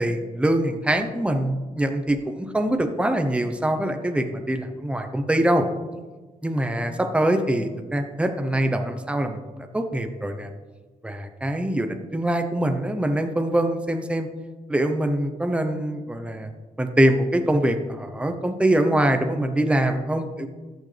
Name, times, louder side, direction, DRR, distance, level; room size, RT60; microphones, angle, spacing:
voice 1, 0.0-5.7 6.4-10.5 11.0-14.3 14.7-16.5 16.8-20.5, right 1 dB, 10° right, 6 dB, 0.8 m, -24 dB
13.5 x 6.3 x 3.3 m, 1.3 s
cardioid pair, 80°, 14 cm